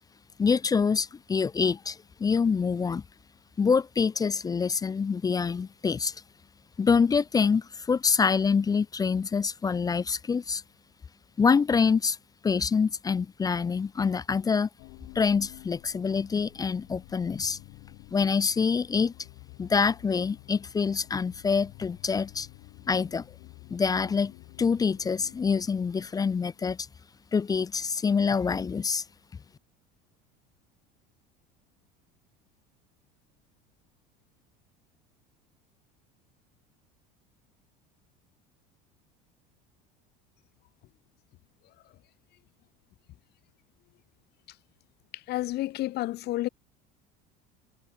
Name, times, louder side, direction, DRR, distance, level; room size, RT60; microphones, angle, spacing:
voice 1, 0.4-3.0 3.6-6.2 6.8-10.6 11.4-12.2 12.4-14.7 15.2-17.6 18.1-19.1 19.6-22.5 22.9-23.2 23.7-24.3 24.6-26.9 27.3-29.0, left 5 dB, 20° left, 0.5 m, -26 dB
sound 1, 14.8-26.7, left 30 dB, 70° left, 6.4 m, -51 dB
voice 2, 45.1-46.5, left 16 dB, 55° left, 1.2 m, -30 dB
supercardioid pair, 105°, 21 cm